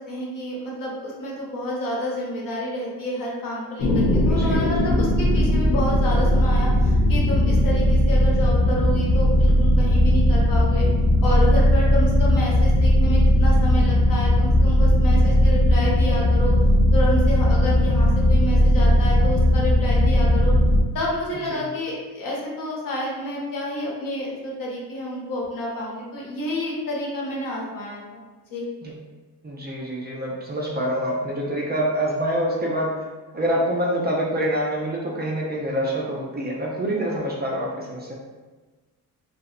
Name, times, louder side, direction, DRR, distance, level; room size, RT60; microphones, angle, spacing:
voice 1, 0.1-10.9 11.2-16.6 16.9-20.5 20.9-28.2 28.5-28.6, equal, 55° left, -4 dB, 0.9 m, -29 dB
sound 1, 3.8-20.8, left 1 dB, 85° left, 0.6 m, -18 dB
voice 2, 4.3-4.9 21.5-21.6 28.8-28.9 29.4-32.9 33.3-38.1, equal, 25° right, -3 dB, 0.4 m, -26 dB
2.7 x 2.0 x 2.4 m, 1.3 s
cardioid pair, 85°, 39 cm